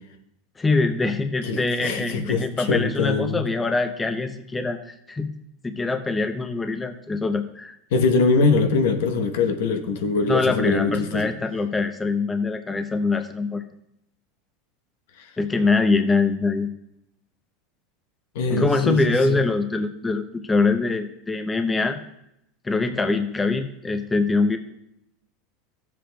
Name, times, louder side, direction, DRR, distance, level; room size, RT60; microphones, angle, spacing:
voice 1, 0.6-5.3 5.6-7.8 10.3-13.7 15.4-16.7 18.5-22.0 22.6-24.6, left 3 dB, 15° left, 7 dB, 0.6 m, -23 dB
voice 2, 1.4-3.5 7.9-11.3 15.2-15.3 18.3-19.4, left 4 dB, 80° left, 7 dB, 0.9 m, -23 dB
14.5 x 7.6 x 2.3 m, 0.79 s
supercardioid pair, 135°, 0 cm